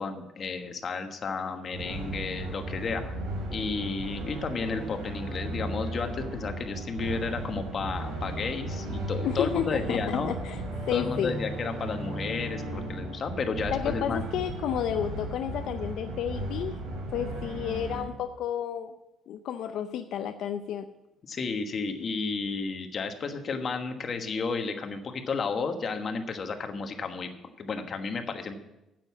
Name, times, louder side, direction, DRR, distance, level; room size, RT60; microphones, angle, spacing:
voice 1, 0.0-3.2 3.5-10.3 10.9-14.2 21.3-27.3 27.6-28.5, left 4 dB, 40° left, 6 dB, 1.3 m, -32 dB
sound 1, 1.7-18.0, right 1 dB, 85° right, 3.7 m, -35 dB
voice 2, 9.3-10.6 10.9-11.3 13.7-16.8 17.1-18.9 19.3-20.9, left 9 dB, 75° left, 7 dB, 0.5 m, -31 dB
9.1 x 7.7 x 7.1 m, 0.93 s
cardioid pair, 120°, 0 cm